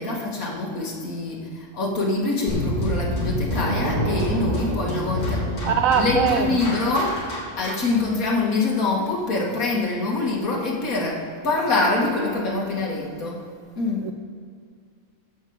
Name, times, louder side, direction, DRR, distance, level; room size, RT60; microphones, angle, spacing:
voice 1, 0.0-7.3 7.6-13.4 13.8-14.1, left 3 dB, 70° left, -2 dB, 2.5 m, -25 dB
sound 1, 2.5-8.0, left 1 dB, 55° left, 3.0 m, -28 dB
sound 2, 3.5-8.2, right 2 dB, 35° right, 0.8 m, -33 dB
voice 2, 5.7-6.6 14.0-14.1, right 7 dB, 75° right, 6 dB, 1.0 m, -21 dB
8.2 x 7.6 x 8.0 m, 2.2 s
omnidirectional pair, 1.5 m